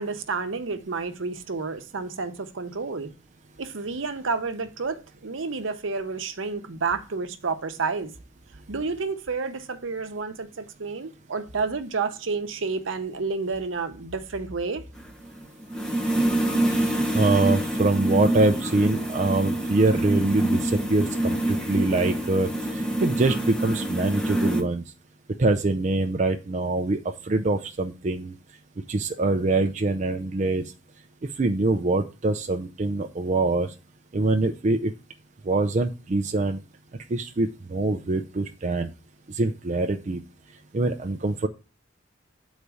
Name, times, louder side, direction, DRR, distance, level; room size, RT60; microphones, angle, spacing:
voice 1, 0.0-3.1 3.6-8.1 8.7-14.8, right 4 dB, 80° right, 0.8 m, -30 dB
sound 1, 15.0-24.6, right 1 dB, 5° left, 1.0 m, -26 dB
voice 2, 16.7-24.8 25.4-28.3 28.9-30.6 31.2-33.7 34.1-34.9 35.4-36.6 37.1-38.9 39.3-40.2 40.7-41.5, right 2 dB, 40° right, 0.5 m, -24 dB
8.2 x 4.1 x 4.8 m
head